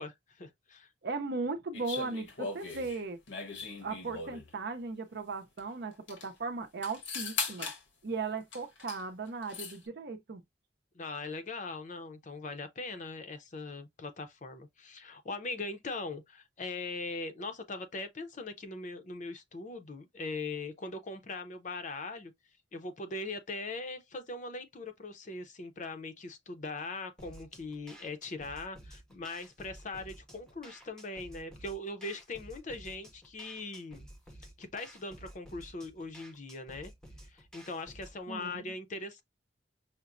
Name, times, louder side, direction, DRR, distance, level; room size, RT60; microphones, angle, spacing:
voice 1, 0.0-0.9 10.9-22.3 22.7-34.1 34.6-36.9 37.3-39.2, left 3 dB, 40° left, 0.6 m, -40 dB
voice 2, 1.0-3.2 3.8-7.7 8.0-10.4 38.3-38.6, right 4 dB, 60° right, 0.6 m, -37 dB
sound 1, 1.7-4.5 5.6-5.7 5.9-6.3 6.8-7.8 8.5-9.0 9.3-9.8, left 4 dB, 90° left, 1.2 m, -39 dB
sound 2, 27.2-38.2, right 1 dB, 5° left, 0.6 m, -53 dB
5.8 x 2.1 x 2.5 m
head